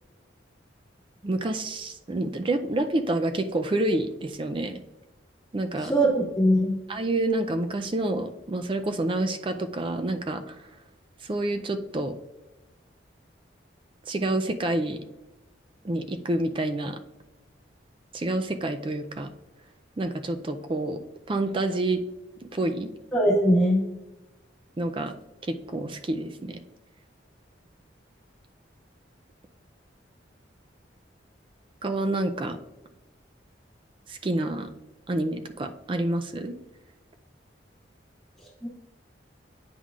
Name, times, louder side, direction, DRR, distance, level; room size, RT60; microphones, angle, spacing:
voice 1, 1.2-4.8 5.5-5.9 6.9-10.7 11.2-12.1 14.1-15.0 15.8-17.0 18.1-19.3 20.0-21.0 21.3-22.0 22.5-22.9 24.8-25.1 25.4-26.6 31.8-32.6 34.1-34.7 35.1-36.5, right 2 dB, 25° right, 8 dB, 0.4 m, -28 dB
voice 2, 5.8-6.8 23.1-23.8 38.6-38.7, equal, ahead, -6 dB, 2.1 m, -21 dB
8.7 x 5.5 x 2.4 m, 1.0 s
head